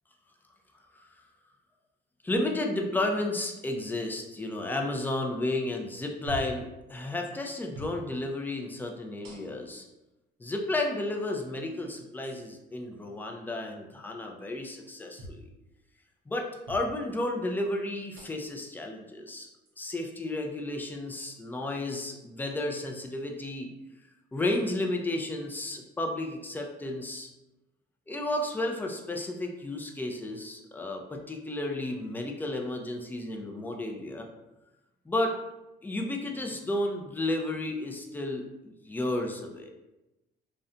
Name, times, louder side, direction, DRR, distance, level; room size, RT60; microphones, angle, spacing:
voice 1, 2.2-9.9 10.4-15.5 16.3-19.5 19.8-23.7 24.3-27.3 28.1-34.3 35.1-35.4 35.8-39.7, left 1 dB, 10° left, 2 dB, 0.4 m, -32 dB
sound 1, 6.3-6.6 7.7-8.0 9.2-9.7 10.7-10.8 12.2-12.4 15.2-15.4 16.7-16.9 18.1-18.5 19.7-19.8 21.1-21.3, equal, 65° right, 0.6 m, -43 dB
2.5 x 2.1 x 2.5 m, 0.98 s
cardioid pair, 90°, 20 cm